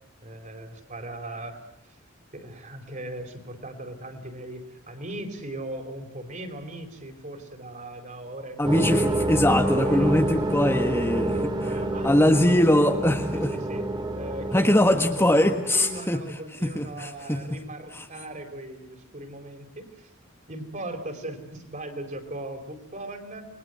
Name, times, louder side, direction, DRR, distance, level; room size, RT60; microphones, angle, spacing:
voice 1, 0.2-1.6 2.3-9.1 9.5-10.2 10.9-13.8 14.1-20.1 20.5-23.5, right 1 dB, 40° right, 5 dB, 4.6 m, -38 dB
voice 2, 8.6-11.3 12.0-13.5 14.5-16.2 16.6-17.6 17.9-18.0, left 1 dB, 10° left, 5 dB, 1.5 m, -22 dB
sound 1, 8.6-16.0, right 1 dB, 25° right, 2.2 m, -28 dB
29.0 x 21.5 x 8.0 m, 0.71 s
head